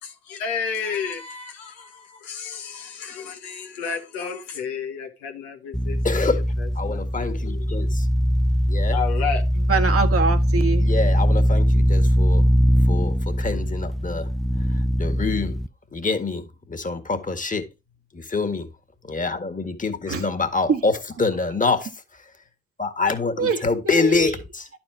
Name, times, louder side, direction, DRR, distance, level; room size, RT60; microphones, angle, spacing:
voice 1, 0.0-6.4 6.9-7.6 8.9-9.4, left 6 dB, 85° left, 1.3 m, -32 dB
sound 1, 5.7-15.7, equal, ahead, 0.5 m, -21 dB
voice 2, 6.0-6.4 6.8-8.1 8.7-9.0 10.8-12.5 12.8-14.3 14.6-15.6 15.9-17.7 18.1-18.7 19.0-22.3 22.8-24.7, left 4 dB, 25° left, 1.8 m, -26 dB
voice 3, 9.7-10.9 20.1-20.2 20.7-20.8 23.4-23.6 23.8-24.3, right 5 dB, 45° right, 1.3 m, -23 dB
11.5 x 4.4 x 4.4 m
hypercardioid pair, 40°, 31 cm